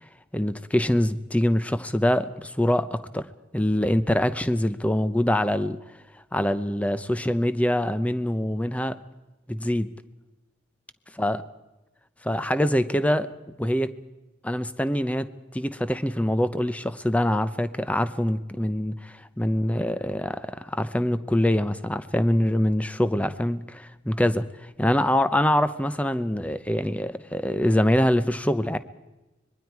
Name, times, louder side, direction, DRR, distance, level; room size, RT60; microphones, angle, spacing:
voice 1, 0.3-3.3 3.5-5.8 6.3-9.0 9.5-9.9 11.2-11.4 12.2-13.3 13.6-13.9 14.4-28.8, left 1 dB, 5° left, 12 dB, 0.7 m, -24 dB
25.5 x 21.5 x 4.7 m, 1.0 s
head